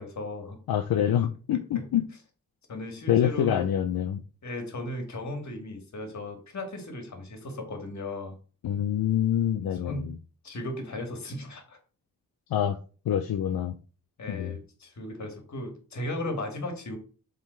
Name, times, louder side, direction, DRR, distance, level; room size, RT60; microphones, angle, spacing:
voice 1, 0.0-0.6 2.7-3.7 4.4-8.4 9.4-9.6 9.8-10.1 10.4-11.8 14.2-17.0, left 1 dB, 50° left, 4 dB, 2.1 m, -36 dB
voice 2, 0.7-2.1 3.1-4.2 8.6-10.2 12.5-12.8 13.1-13.7 14.3-14.6, left 10 dB, 75° left, 8 dB, 0.6 m, -26 dB
7.4 x 3.9 x 4.5 m, 0.38 s
wide cardioid pair, 135°, 36 cm